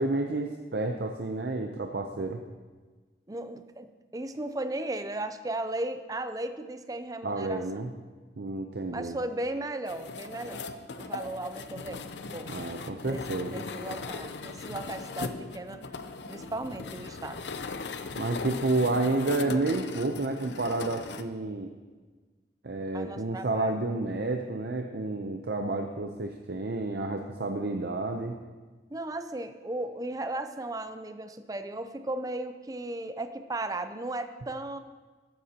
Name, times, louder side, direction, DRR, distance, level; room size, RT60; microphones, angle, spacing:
voice 1, 0.0-2.4 7.2-7.9 8.4-9.2 12.5-13.7 18.2-21.7 22.6-28.4, right 2 dB, 60° right, 3 dB, 0.7 m, -30 dB
voice 2, 3.3-3.9 4.1-7.6 8.9-10.6 11.0-12.5 13.0-13.2 13.5-15.8 16.3-17.4 22.9-23.8 28.9-34.8, right 2 dB, 20° right, 9 dB, 0.5 m, -36 dB
sound 1, 9.9-21.2, left 4 dB, 70° left, 0.6 m, -39 dB
14.5 x 12.5 x 2.9 m, 1.4 s
head